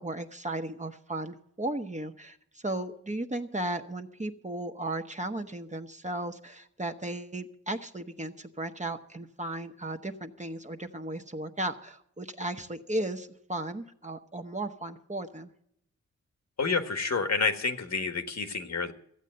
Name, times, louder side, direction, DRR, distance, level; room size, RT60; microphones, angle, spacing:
voice 1, 0.0-15.5, right 1 dB, 25° right, 5 dB, 1.2 m, -35 dB
voice 2, 16.6-18.9, left 4 dB, 60° left, 7 dB, 1.6 m, -29 dB
15.0 x 8.2 x 7.9 m, 0.72 s
cardioid pair, 60°, 31 cm